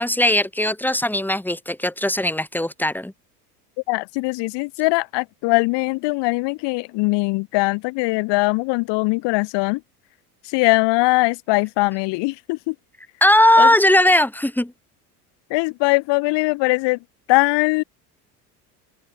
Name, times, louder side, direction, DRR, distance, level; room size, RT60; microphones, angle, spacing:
voice 1, 0.0-3.1 13.2-14.7, left 1 dB, 5° left, 6.4 m, -18 dB
voice 2, 3.9-9.8 10.4-12.8 13.6-13.7 15.5-17.0 17.3-17.8, left 25 dB, 60° left, 7.6 m, -21 dB
hypercardioid pair, 85°, 46 cm